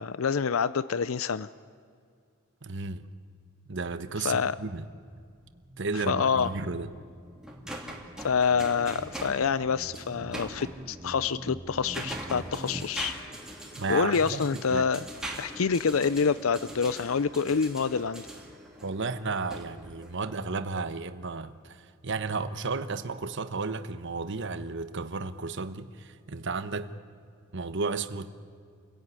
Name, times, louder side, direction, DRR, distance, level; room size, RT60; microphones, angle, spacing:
voice 1, 0.0-1.5 4.2-4.6 5.9-6.5 8.2-13.1 13.9-15.0 15.4-18.3, left 6 dB, 80° left, 16 dB, 0.5 m, -27 dB
voice 2, 2.6-3.0 3.7-4.8 5.8-6.9 13.8-14.4 14.7-14.8 18.8-26.9 27.5-28.4, right 4 dB, 60° right, 11 dB, 1.1 m, -33 dB
sound 1, 4.6-12.9, right 1 dB, 20° right, 0.8 m, -46 dB
sound 2, 6.0-10.8 11.5-20.5, right 1 dB, 5° right, 2.8 m, -43 dB
28.5 x 17.0 x 9.7 m, 2.2 s
head